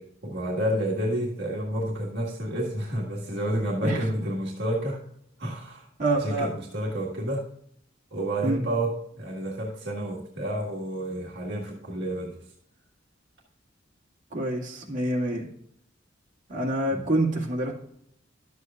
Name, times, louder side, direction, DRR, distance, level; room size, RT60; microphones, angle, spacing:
voice 1, 0.0-5.0 5.4-5.9 6.2-7.5 8.1-12.4 16.9-17.0, right 1 dB, 60° right, -3 dB, 1.7 m, -30 dB
voice 2, 6.0-6.5 8.4-8.6 14.3-15.5 16.5-17.7, right 1 dB, 40° right, -3 dB, 2.1 m, -26 dB
12.0 x 8.1 x 2.4 m, 0.71 s
head